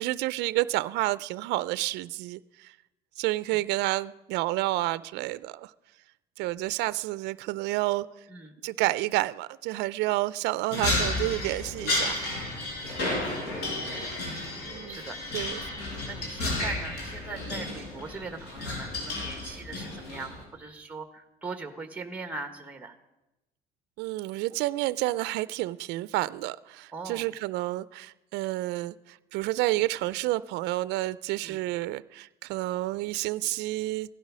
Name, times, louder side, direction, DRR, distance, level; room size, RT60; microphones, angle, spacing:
voice 1, 0.0-2.7 3.2-5.7 6.4-8.1 8.6-12.2 14.6-15.0 15.3-15.8 24.0-34.1, right 18 dB, 85° right, 0.4 m, -30 dB
sound 1, 10.7-20.4, left 2 dB, 80° left, 4.7 m, -32 dB
voice 2, 13.6-14.0 14.9-15.2 16.1-22.9 26.9-27.3 31.4-31.6, right 3 dB, 10° right, 1.2 m, -40 dB
16.0 x 11.5 x 6.2 m
cardioid pair, 110°, 17 cm